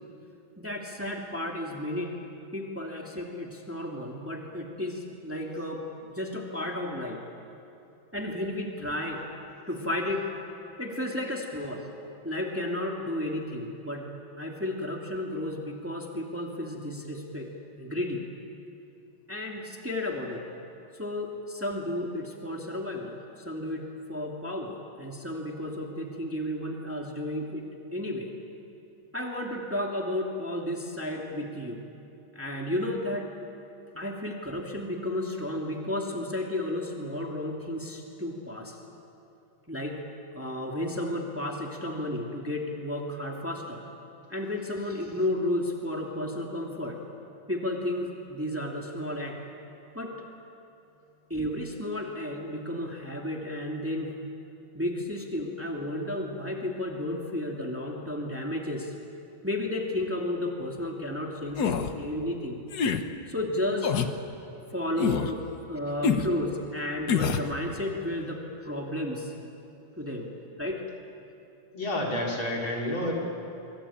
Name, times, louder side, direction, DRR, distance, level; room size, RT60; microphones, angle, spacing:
voice 1, 0.6-2.1 2.5-7.2 8.1-9.2 9.7-10.3 10.8-11.9 12.2-14.1 14.4-17.5 17.8-18.2 19.3-20.4 20.9-28.3 29.1-31.8 32.3-33.3 33.9-38.8 39.7-40.0 40.3-43.8 44.3-47.0 47.5-49.4 49.9-50.2 51.3-54.2 54.7-58.9 59.4-62.6 63.3-63.9 64.7-69.3 70.0-70.3 70.6-70.8, left 1 dB, 5° right, 0 dB, 2.4 m, -33 dB
sound 1, 61.6-61.9 62.7-63.0 63.8-64.1 65.0-65.3 66.0-66.3 67.1-67.5, left 6 dB, 55° left, 1.5 m, -26 dB
voice 2, 71.7-73.1, left 1 dB, 75° left, -2 dB, 5.2 m, -29 dB
25.0 x 24.0 x 8.8 m, 2.7 s
omnidirectional pair, 2.2 m